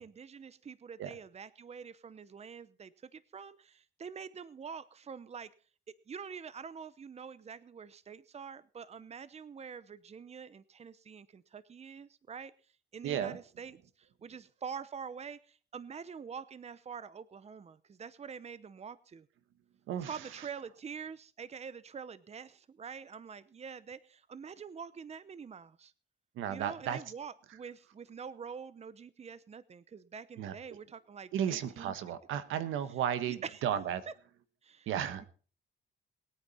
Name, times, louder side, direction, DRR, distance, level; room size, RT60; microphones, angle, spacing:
voice 1, 0.0-5.5 5.9-12.5 12.9-19.3 20.1-25.9 26.5-31.9 32.9-33.0 33.3-33.6 34.1-34.2 34.6-34.9 35.2-35.3, right 6 dB, 35° right, 17 dB, 0.8 m, -46 dB
voice 2, 13.0-13.4 19.9-20.1 26.4-27.0 30.4-30.5 31.3-34.0 34.9-35.2, right 9 dB, 85° right, 13 dB, 1.3 m, -34 dB
21.0 x 9.2 x 4.2 m, 0.39 s
cardioid pair, 90°, 20 cm